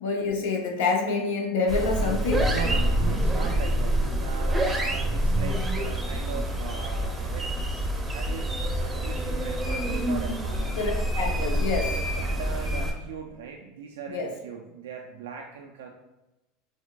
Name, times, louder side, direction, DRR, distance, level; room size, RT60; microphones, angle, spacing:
voice 1, 0.0-2.5 10.7-11.9 14.1-14.3, left 4 dB, 85° left, 0 dB, 0.7 m, -27 dB
sound 1, 1.7-12.9, right 1 dB, 15° right, 0.6 m, -27 dB
voice 2, 2.5-7.5 8.0-10.9 11.9-15.9, right 6 dB, 90° right, 2 dB, 0.3 m, -39 dB
4.5 x 2.2 x 2.3 m, 0.98 s
supercardioid pair, 105°, 0 cm